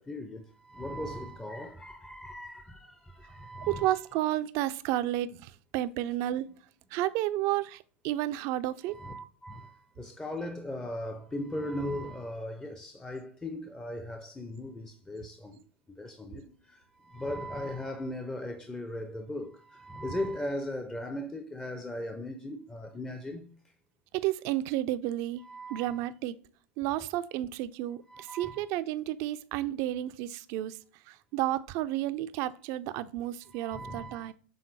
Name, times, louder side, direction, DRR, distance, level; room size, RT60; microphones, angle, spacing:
voice 1, 0.0-4.0 8.9-15.6 16.0-23.5 25.4-26.0 28.1-28.7 33.5-34.3, left 1 dB, 10° left, 0.5 m, -38 dB
voice 2, 3.7-6.5 6.9-9.0 24.1-26.4 26.8-30.8 31.1-34.3, right 14 dB, 45° right, 0.4 m, -31 dB
6.4 x 3.7 x 4.1 m
figure-of-eight pair, 90°, 7 cm